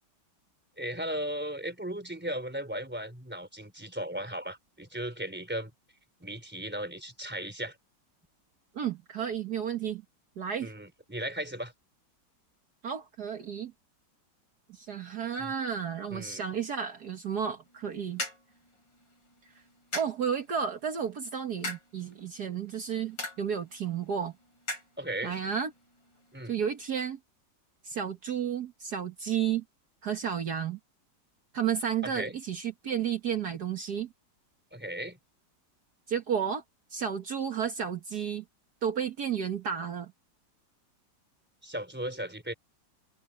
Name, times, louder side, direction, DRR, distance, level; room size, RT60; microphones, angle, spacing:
voice 1, 0.8-5.7 6.2-7.8 10.6-11.7 15.4-15.5 16.1-16.4 25.0-25.3 26.3-26.6 32.0-32.4 34.7-35.2 41.6-42.5, right 1 dB, 5° right, 3.8 m, -36 dB
voice 2, 8.8-10.0 10.4-10.7 12.8-13.7 14.7-18.2 19.9-24.3 25.2-25.7 26.5-27.2 27.8-29.6 30.0-30.8 31.5-34.1 36.1-36.6 36.9-38.4 38.8-40.1, right 8 dB, 60° right, 1.9 m, -32 dB
sound 1, 17.7-27.1, left 2 dB, 80° left, 8.9 m, -44 dB
omnidirectional pair, 2.0 m